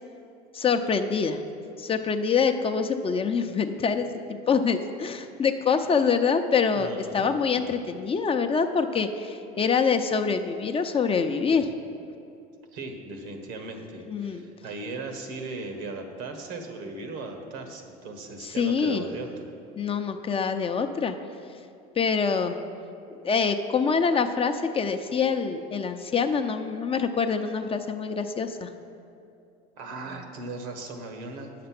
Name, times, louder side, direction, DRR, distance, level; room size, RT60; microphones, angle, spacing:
voice 1, 0.5-1.4 1.8-11.7 14.1-14.4 18.4-19.0 19.8-21.1 22.0-22.6 23.2-28.7, left 5 dB, 30° left, 7 dB, 0.6 m, -25 dB
voice 2, 6.8-7.3 12.7-19.5 29.8-31.5, right 3 dB, 75° right, 5 dB, 1.4 m, -37 dB
9.4 x 6.7 x 6.0 m, 2.6 s
supercardioid pair, 95°, 20 cm